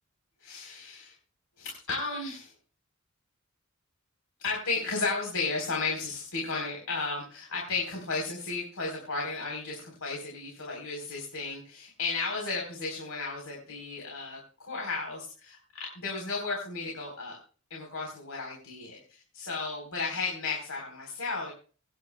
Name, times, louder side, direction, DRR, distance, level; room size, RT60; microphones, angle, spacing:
voice 1, 0.4-1.1 1.6-2.5 4.4-17.4 17.7-21.5, left 4 dB, 90° left, -2 dB, 4.2 m, -34 dB
24.5 x 10.5 x 2.3 m, 0.39 s
head